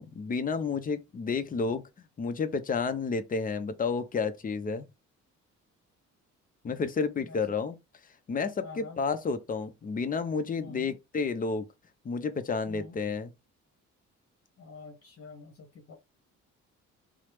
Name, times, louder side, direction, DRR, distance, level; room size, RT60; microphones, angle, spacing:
voice 1, 0.0-1.8 2.2-4.9 6.6-7.8 8.3-11.7 12.0-13.3, left 5 dB, 30° left, 0.5 m, -31 dB
voice 2, 8.6-9.0 10.6-11.0 12.7-13.0 14.6-15.9, left 4 dB, 50° left, 1.0 m, -47 dB
3.1 x 2.0 x 3.0 m
cardioid pair, 90°, 30 cm